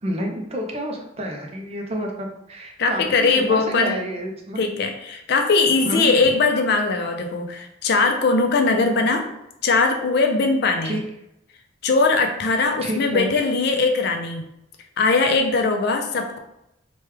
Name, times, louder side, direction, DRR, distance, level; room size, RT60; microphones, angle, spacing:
voice 1, 0.0-4.6 5.8-6.3 10.8-11.0 12.8-13.3, equal, 30° right, 1 dB, 0.4 m, -29 dB
voice 2, 2.8-3.9 4.6-9.3 9.6-11.0 11.8-14.4 15.0-16.4, left 3 dB, 55° left, 4 dB, 0.4 m, -20 dB
3.1 x 2.2 x 3.2 m, 0.83 s
head